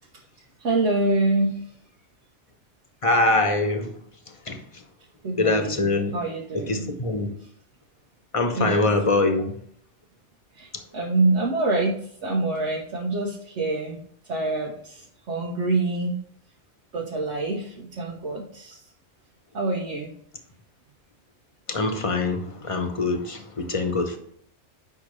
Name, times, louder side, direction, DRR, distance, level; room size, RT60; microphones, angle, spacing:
voice 1, 0.6-1.6 5.2-6.9 8.5-8.9 10.5-14.0 14.3-16.1 16.9-18.8 19.5-20.1, right 2 dB, 85° right, -2 dB, 1.3 m, -26 dB
voice 2, 3.0-3.9 4.5-4.8 5.3-6.2 6.5-7.3 8.3-9.5 21.7-24.2, left 2 dB, 30° left, 5 dB, 0.9 m, -23 dB
8.7 x 5.7 x 3.2 m, 0.64 s
omnidirectional pair, 1.2 m